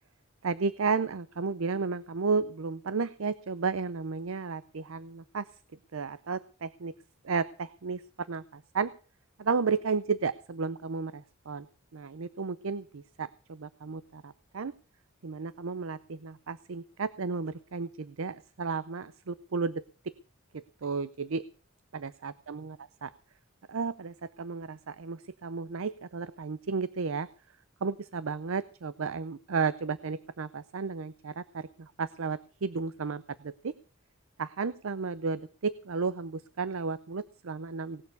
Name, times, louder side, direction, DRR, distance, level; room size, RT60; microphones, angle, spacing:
voice 1, 0.4-5.4 5.9-6.9 7.2-8.0 8.3-8.9 9.4-11.7 11.9-14.7 15.2-19.8 20.5-21.4 21.9-23.1 23.7-27.3 27.8-33.7 34.4-38.0, right 4 dB, 80° right, 16 dB, 0.6 m, -33 dB
18.5 x 6.7 x 8.2 m, 0.39 s
head